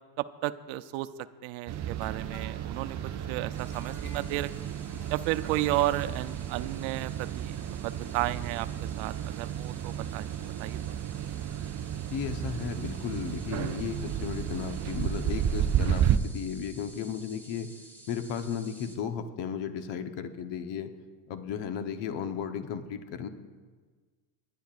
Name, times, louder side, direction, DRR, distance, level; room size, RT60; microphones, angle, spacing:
voice 1, 0.2-1.1 1.4-3.0 3.3-4.7 5.1-8.7 9.0-10.3 10.6-11.0, right 16 dB, 75° right, 13 dB, 0.7 m, -33 dB
sound 1, 1.7-16.2, right 9 dB, 35° right, 0.5 m, -32 dB
sound 2, 2.0-6.3 6.7-6.8 7.2-7.3 7.5-7.6 7.9-8.0, left 2 dB, 80° left, 3.1 m, -53 dB
sound 3, 3.5-19.0, right 1 dB, 5° left, 1.9 m, -54 dB
voice 2, 12.1-17.7 18.1-20.9 21.3-23.3, left 7 dB, 60° left, 8 dB, 1.1 m, -34 dB
27.0 x 11.0 x 2.5 m, 1.5 s
supercardioid pair, 105°, 48 cm